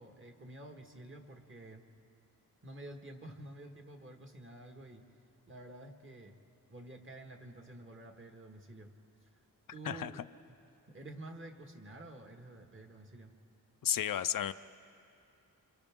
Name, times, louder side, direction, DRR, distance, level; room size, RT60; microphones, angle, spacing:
voice 1, 0.0-1.8 2.6-5.0 5.5-6.4 6.7-8.9 9.7-10.2 10.5-10.6 10.9-13.4, right 1 dB, 35° right, 3 dB, 1.7 m, -50 dB
voice 2, 13.8-14.5, left 10 dB, 65° left, 12 dB, 0.5 m, -32 dB
30.0 x 26.5 x 3.7 m, 2.6 s
wide cardioid pair, 110°, 36 cm